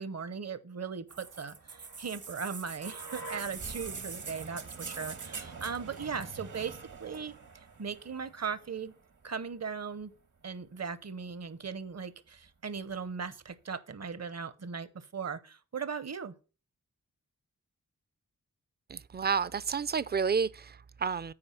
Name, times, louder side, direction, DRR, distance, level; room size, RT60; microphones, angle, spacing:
voice 1, 0.0-8.9 9.2-10.1 10.4-16.3, right 6 dB, 55° right, 0.8 m, -38 dB
sound 1, 1.1-9.0 10.0-10.1, right 4 dB, 70° right, 1.3 m, -43 dB
voice 2, 18.9-21.3, right 6 dB, 30° right, 0.4 m, -30 dB
8.7 x 4.7 x 5.8 m
cardioid pair, 55°, 32 cm